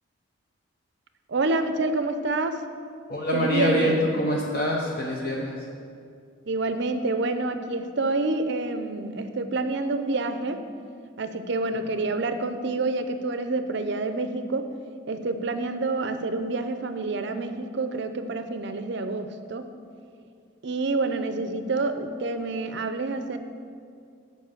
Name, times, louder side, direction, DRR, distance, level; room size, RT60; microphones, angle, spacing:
voice 1, 1.3-2.7 3.3-4.0 6.5-10.6 11.2-14.7 15.1-19.7 20.6-23.4, right 3 dB, 55° right, 9 dB, 0.5 m, -28 dB
voice 2, 3.1-5.6, left 1 dB, 45° left, -2 dB, 0.7 m, -25 dB
7.4 x 5.2 x 7.2 m, 2.3 s
head